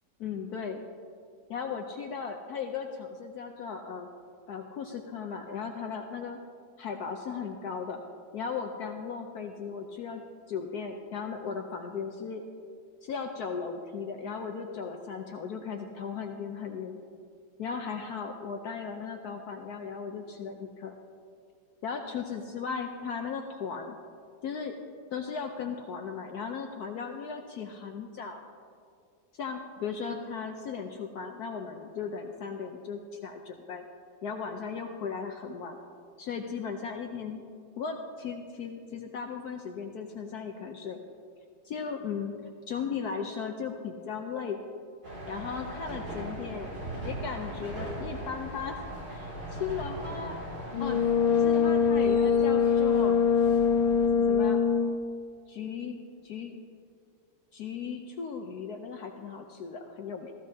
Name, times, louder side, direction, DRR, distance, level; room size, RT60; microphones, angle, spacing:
voice 1, 0.2-0.8 1.5-4.1 4.5-6.4 6.8-8.0 8.3-10.2 10.5-12.4 13.0-17.0 17.6-20.9 21.8-24.0 24.4-24.8 25.1-28.4 29.3-33.8 34.2-35.8 36.2-37.4 37.8-41.0 41.6-42.3 42.7-44.6 45.3-46.7 47.0-50.4 50.8-51.0 51.4-53.2 54.1-54.6 55.5-56.0 56.2-56.6 57.5-60.3, left 6 dB, 65° left, 4 dB, 1.0 m, -36 dB
sound 1, 45.0-54.1, right 1 dB, 50° right, 3.0 m, -40 dB
Brass instrument, 50.7-55.1, left 6 dB, 85° left, 1.6 m, -23 dB
15.5 x 14.5 x 2.8 m, 2.2 s
omnidirectional pair, 2.1 m